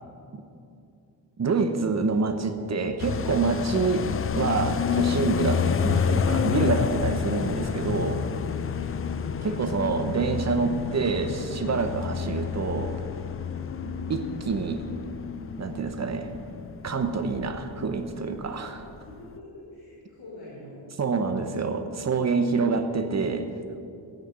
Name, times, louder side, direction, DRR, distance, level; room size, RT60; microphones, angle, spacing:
voice 1, 1.4-8.3 9.4-13.0 14.1-14.9 15.6-16.3 16.8-18.8 21.0-23.5, right 4 dB, 40° right, 7 dB, 0.9 m, -27 dB
sound 1, 3.0-18.1 18.4-18.5 18.8-19.4, left 6 dB, 35° left, 0.4 m, -29 dB
voice 2, 8.7-9.4 13.7-14.2 18.5-18.7 19.1-20.8, equal, 60° left, -10 dB, 4.0 m, -45 dB
15.0 x 6.6 x 8.8 m, 2.6 s
wide cardioid pair, 175°, 42 cm